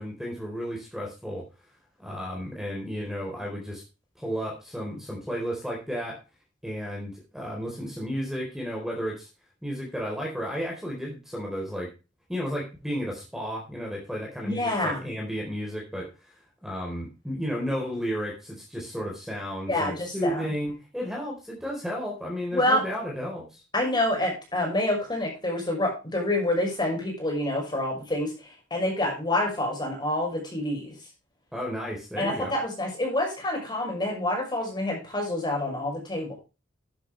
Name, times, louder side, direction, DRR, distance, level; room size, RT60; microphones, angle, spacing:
voice 1, 0.0-1.4 2.0-3.8 4.2-6.2 6.6-9.3 9.6-11.9 12.3-16.1 16.6-23.6 31.5-32.5, equal, ahead, -2 dB, 4.2 m, -33 dB
voice 2, 14.4-15.1 19.7-20.5 22.5-22.8 23.7-30.9 32.2-36.3, left 1 dB, 25° left, 0 dB, 6.1 m, -27 dB
12.0 x 10.0 x 3.4 m, 0.29 s
head